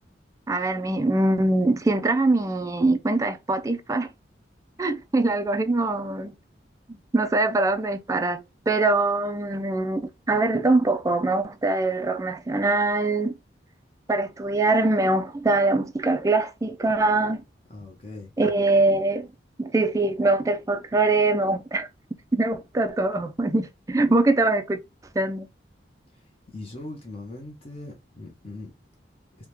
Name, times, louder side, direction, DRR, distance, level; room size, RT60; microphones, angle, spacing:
voice 1, 0.5-4.1 4.8-6.3 7.1-13.3 14.1-17.4 18.4-19.3 19.6-21.9 22.3-24.8 25.1-25.5, right 2 dB, 20° right, 0.3 m, -23 dB
voice 2, 17.7-18.3 26.1-28.7, left 2 dB, 30° left, 0.7 m, -40 dB
3.4 x 2.2 x 3.0 m
head